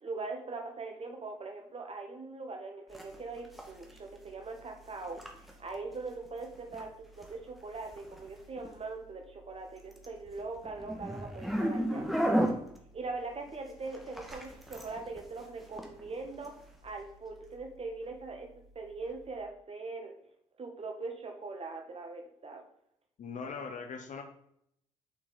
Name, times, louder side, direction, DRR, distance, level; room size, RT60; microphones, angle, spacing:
voice 1, 0.0-5.2 5.6-12.1 12.9-16.5 16.8-18.5 18.7-20.1 20.6-22.6, right 3 dB, 35° right, 3 dB, 1.7 m, -41 dB
sound 1, 2.9-19.4, equal, ahead, 1.5 m, -38 dB
voice 2, 23.2-24.2, left 5 dB, 45° left, 5 dB, 1.2 m, -40 dB
7.0 x 6.2 x 4.0 m, 0.71 s
figure-of-eight pair, 40°, 17 cm